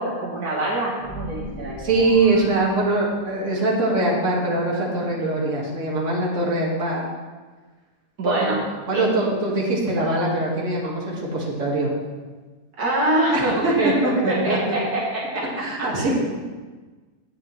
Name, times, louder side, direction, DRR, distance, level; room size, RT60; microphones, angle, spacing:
voice 1, 0.0-1.8 8.2-8.6 8.9-9.0 12.8-15.6 15.9-16.1, right 1 dB, 70° right, -5 dB, 2.0 m, -24 dB
sound 1, 1.0-3.5, equal, 45° left, 1.7 m, -37 dB
voice 2, 1.8-7.0 8.2-8.5 8.9-11.9 13.3-13.7 14.2-14.8 15.6-16.2, right 2 dB, 50° right, -5 dB, 2.2 m, -22 dB
11.0 x 8.6 x 3.2 m, 1.3 s
omnidirectional pair, 1.7 m